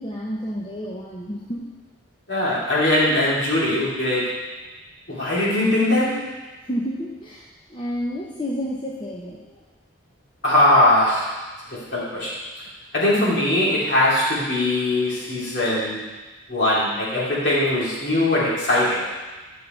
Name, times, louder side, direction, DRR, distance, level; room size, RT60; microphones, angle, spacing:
voice 1, 0.0-1.7 6.7-7.4 7.7-9.4, equal, 25° left, -5 dB, 0.7 m, -30 dB
voice 2, 2.3-4.4 5.1-6.2 10.4-11.3 11.7-12.3 12.9-16.0 16.5-19.0, left 1 dB, 55° left, -8 dB, 2.8 m, -20 dB
10.0 x 5.4 x 4.4 m, 1.2 s
head